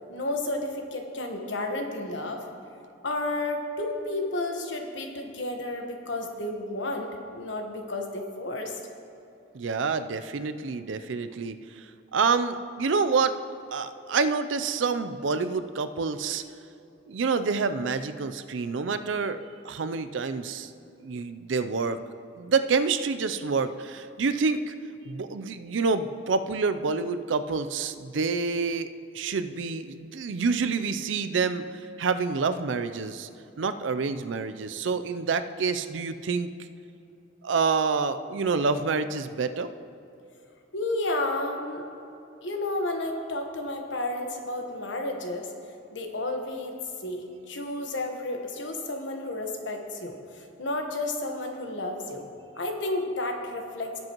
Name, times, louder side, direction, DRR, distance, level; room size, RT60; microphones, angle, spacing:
voice 1, 0.0-2.4 3.0-8.8 40.7-41.8 42.4-45.5 45.9-52.3 52.6-54.0, left 2 dB, 70° left, 3 dB, 1.2 m, -32 dB
voice 2, 9.5-11.9 12.1-13.3 13.7-16.4 17.1-19.4 19.6-20.7 21.0-22.0 22.4-24.7 25.0-28.9 29.1-33.3 33.6-36.5 37.4-39.7, right 4 dB, 80° right, 11 dB, 0.5 m, -27 dB
17.5 x 7.8 x 3.0 m, 2.8 s
head